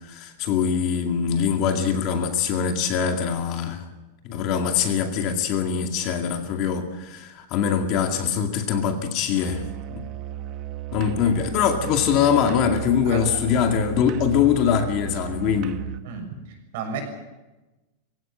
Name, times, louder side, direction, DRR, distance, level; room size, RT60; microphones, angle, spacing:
voice 1, 0.1-3.8 4.2-9.6 9.9-10.0 10.9-15.8, left 7 dB, 35° left, 2.2 m, -23 dB
Musical instrument, 9.3-16.1, right 14 dB, 30° right, 0.9 m, -35 dB
voice 2, 13.0-13.4 16.0-16.3 16.7-17.0, right 6 dB, 55° right, 6.7 m, -32 dB
23.5 x 16.5 x 8.7 m
supercardioid pair, 180°, 0 cm